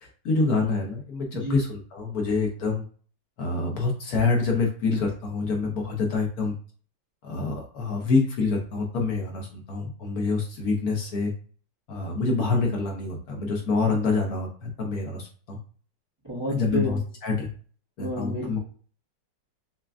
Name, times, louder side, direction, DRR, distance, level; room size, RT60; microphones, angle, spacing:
voice 1, 0.0-2.8 3.4-6.5 7.2-11.3 11.9-15.6 16.5-17.5 18.0-18.6, left 3 dB, 65° left, 1 dB, 1.1 m, -26 dB
voice 2, 16.2-17.0 18.0-18.6, equal, 20° right, -5 dB, 0.7 m, -30 dB
5.8 x 2.1 x 2.4 m, 0.43 s
omnidirectional pair, 2.0 m